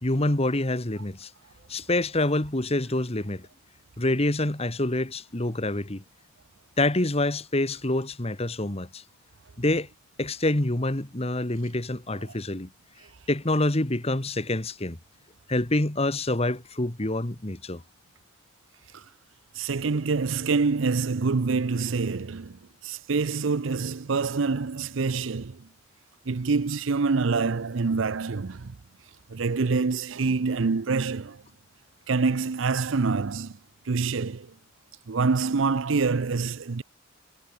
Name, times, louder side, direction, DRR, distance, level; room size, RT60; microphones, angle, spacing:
voice 1, 0.0-1.3 1.7-3.5 4.0-6.0 6.8-9.0 9.6-9.9 10.2-12.7 13.3-15.0 15.5-17.8, left 1 dB, 30° left, 1.7 m, -26 dB
voice 2, 19.5-25.7 26.3-28.8 29.3-31.4 32.1-33.6 33.9-34.5 35.1-36.8, right 4 dB, 75° right, 0.6 m, -26 dB
head